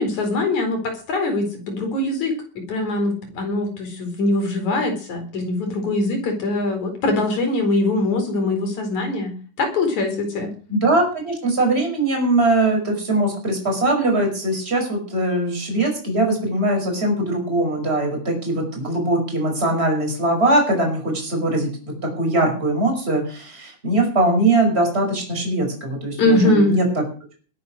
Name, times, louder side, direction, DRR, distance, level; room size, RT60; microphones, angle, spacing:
voice 1, 0.0-10.5 26.2-26.8, left 2 dB, 65° left, 5 dB, 5.5 m, -22 dB
voice 2, 10.7-26.9, right 2 dB, 20° right, 2 dB, 5.8 m, -21 dB
21.5 x 9.6 x 6.3 m, 0.39 s
omnidirectional pair, 3.6 m